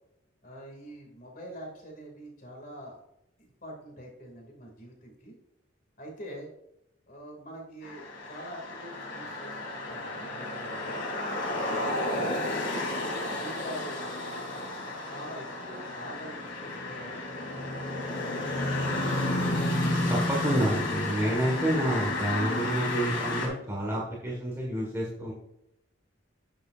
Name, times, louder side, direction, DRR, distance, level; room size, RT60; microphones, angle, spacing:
voice 1, 0.4-3.0 3.4-5.4 6.0-6.5 7.1-11.3 11.7-12.3 12.6-14.8 15.1-17.7 17.9-18.4, equal, 45° left, 0 dB, 2.4 m, -44 dB
sound 1, 7.8-23.5, left 2 dB, 85° left, 3.5 m, -32 dB
voice 2, 20.1-25.3, right 1 dB, 15° right, -4 dB, 1.6 m, -29 dB
10.5 x 7.8 x 2.5 m, 0.80 s
head